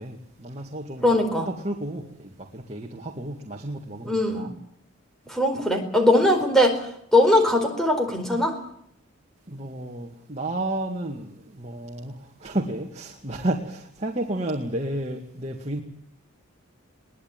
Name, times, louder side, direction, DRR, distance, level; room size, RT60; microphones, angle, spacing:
voice 1, 0.0-1.1 1.4-4.5 9.5-15.8, right 1 dB, 30° right, 2.2 m, -32 dB
voice 2, 1.0-1.5 4.0-4.5 5.3-6.8 7.1-8.5, left 1 dB, ahead, 4.6 m, -20 dB
22.0 x 18.5 x 9.1 m
head